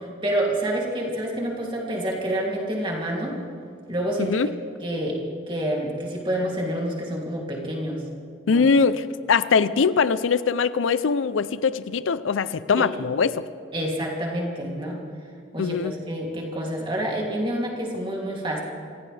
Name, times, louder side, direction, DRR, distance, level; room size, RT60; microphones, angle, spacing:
voice 1, 0.0-3.4 3.9-4.4 4.8-5.2 5.5-8.0 8.5-8.6 12.8-12.9 13.7-15.0 15.5-18.6, right 1 dB, 25° right, -2 dB, 2.8 m, -28 dB
voice 2, 8.5-13.4 15.6-15.9, left 5 dB, 90° left, 15 dB, 0.5 m, -22 dB
26.5 x 15.5 x 3.4 m, 2.3 s
head